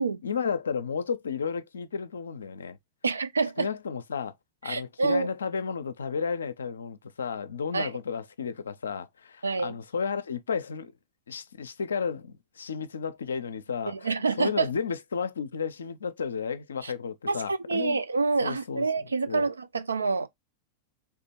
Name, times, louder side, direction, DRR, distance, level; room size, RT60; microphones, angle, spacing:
voice 1, 0.2-2.8 3.6-4.3 4.6-10.9 11.3-18.0 18.4-19.5, left 6 dB, 70° left, 0.4 m, -33 dB
voice 2, 3.0-3.7 4.6-5.3 7.7-7.9 9.4-9.8 13.9-14.7 16.8-16.9 17.3-20.3, right 4 dB, 75° right, 0.4 m, -27 dB
3.6 x 2.9 x 4.2 m
figure-of-eight pair, 90°, 0 cm